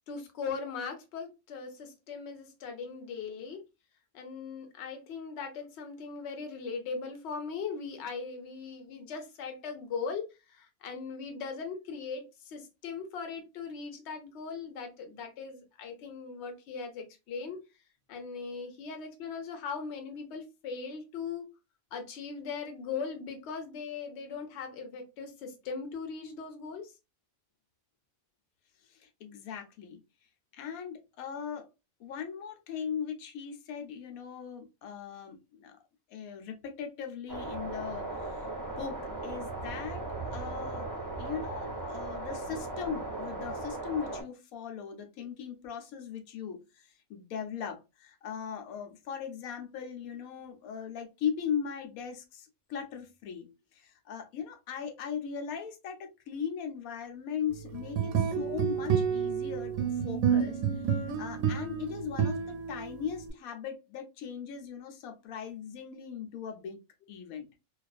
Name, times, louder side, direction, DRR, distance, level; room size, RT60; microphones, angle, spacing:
voice 1, 0.1-3.6 4.1-17.6 18.1-21.5 21.9-26.9 40.7-41.1 50.4-50.5, left 5 dB, 60° left, 0.9 m, -39 dB
voice 2, 29.0-30.0 30.5-31.7 32.0-35.7 36.1-40.9 41.2-60.8 61.2-66.8 67.1-67.5, left 7 dB, 85° left, 1.0 m, -39 dB
sound 1, 37.3-44.2, right 2 dB, 20° right, 0.5 m, -37 dB
sound 2, 57.7-63.3, right 7 dB, 85° right, 1.0 m, -30 dB
2.4 x 2.3 x 2.3 m
omnidirectional pair, 1.4 m